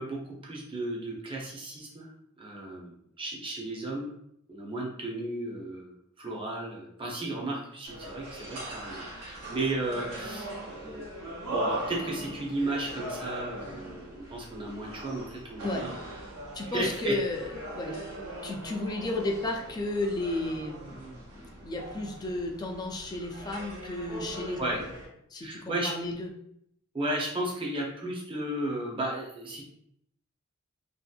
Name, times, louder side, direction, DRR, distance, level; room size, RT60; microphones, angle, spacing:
voice 1, 0.0-2.1 2.4-4.1 4.5-15.9 16.6-17.2 24.6-24.8 25.4-25.9 26.9-29.6, right 1 dB, 25° right, -3 dB, 0.7 m, -34 dB
sound 1, 7.9-25.1, right 1 dB, 85° right, 0.9 m, -40 dB
voice 2, 16.5-18.0 18.4-24.8 25.3-26.3, left 2 dB, 20° left, 1 dB, 0.4 m, -33 dB
2.7 x 2.5 x 2.4 m, 0.73 s
head